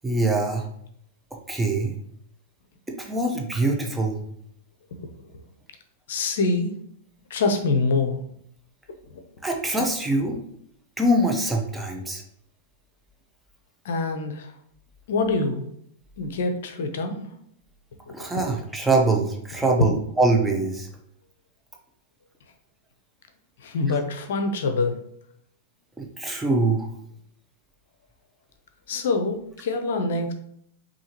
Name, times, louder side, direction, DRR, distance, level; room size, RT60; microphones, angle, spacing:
voice 1, 0.0-0.7 1.5-1.9 3.0-4.2 9.4-10.4 11.0-12.2 18.1-20.9 26.0-26.9, right 2 dB, 10° right, 1 dB, 0.8 m, -23 dB
voice 2, 6.1-6.8 7.3-8.2 9.1-9.2 13.8-14.5 15.1-15.7 16.2-17.3 18.2-18.3 23.6-25.0 28.9-30.3, left 3 dB, 70° left, 7 dB, 0.6 m, -25 dB
5.4 x 2.8 x 3.0 m, 0.71 s
hypercardioid pair, 115°, 0 cm